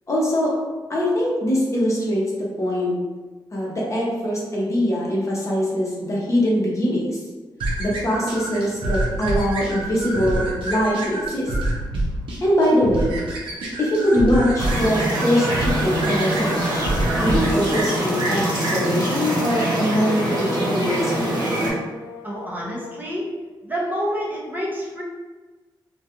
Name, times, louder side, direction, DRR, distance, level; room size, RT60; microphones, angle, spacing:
voice 1, 0.1-0.6 0.9-2.9 3.5-7.2 7.8-11.5 12.4-13.2 13.8-16.8 17.2-21.4, equal, 35° left, -5 dB, 0.7 m, -22 dB
sound 1, 7.6-17.7, right 1 dB, 80° right, 0.6 m, -27 dB
sound 2, 14.6-21.7, right 1 dB, 55° right, 0.8 m, -24 dB
sound 3, 16.5-23.2, left 6 dB, 65° left, 0.4 m, -41 dB
voice 2, 22.2-23.3 23.6-25.0, equal, 20° right, -5 dB, 0.6 m, -28 dB
2.3 x 2.2 x 2.8 m, 1.3 s
cardioid pair, 100°, 9 cm